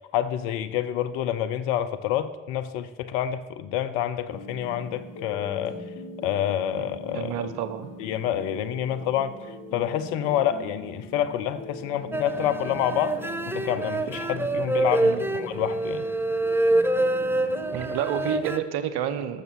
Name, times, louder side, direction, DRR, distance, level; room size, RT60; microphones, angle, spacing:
voice 1, 0.0-5.7 6.2-7.5 8.0-13.2 13.5-16.0, left 10 dB, 85° left, 11 dB, 0.7 m, -28 dB
sound 1, 4.3-17.8, left 1 dB, 40° left, 2.2 m, -42 dB
voice 2, 6.7-7.9 15.0-15.2 17.7-19.4, right 9 dB, 75° right, 12 dB, 0.9 m, -30 dB
sound 2, 12.1-18.6, right 1 dB, 5° right, 0.8 m, -26 dB
13.0 x 6.6 x 6.3 m, 1.3 s
hypercardioid pair, 40°, 39 cm